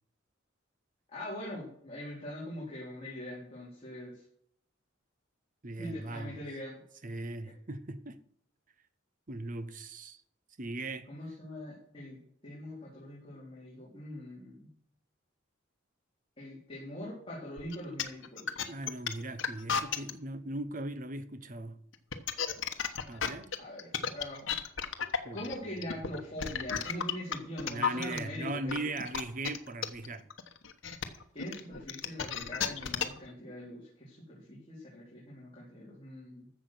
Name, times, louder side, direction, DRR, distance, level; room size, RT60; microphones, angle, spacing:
voice 1, 1.1-4.2 5.8-6.8 11.1-14.7 16.4-18.6 23.6-24.5 25.3-28.8 31.3-36.5, left 1 dB, 30° left, 4.1 m, -42 dB
voice 2, 5.6-6.4 7.0-8.2 9.3-10.2 10.6-11.1 18.7-21.8 23.1-23.5 25.2-26.1 27.6-30.3, right 2 dB, 40° right, 1.0 m, -39 dB
sound 1, 17.6-20.1 21.9-28.2 28.7-33.3, left 7 dB, 80° left, 1.2 m, -33 dB
14.0 x 7.3 x 5.9 m
head